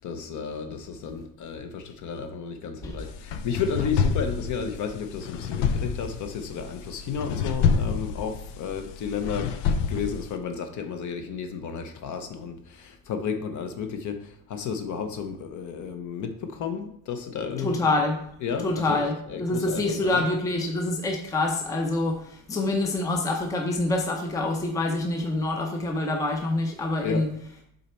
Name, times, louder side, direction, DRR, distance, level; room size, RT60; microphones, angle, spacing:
voice 1, 0.0-9.5 9.9-17.9 18.4-19.0 19.3-20.3 27.0-27.3, left 6 dB, 45° left, 6 dB, 0.8 m, -32 dB
sound 1, 3.0-10.4, left 6 dB, 85° left, 0.7 m, -28 dB
voice 2, 17.6-18.2 18.6-27.3, left 2 dB, 10° left, 2 dB, 0.6 m, -26 dB
6.7 x 4.1 x 4.4 m, 0.71 s
cardioid pair, 165°, 40 cm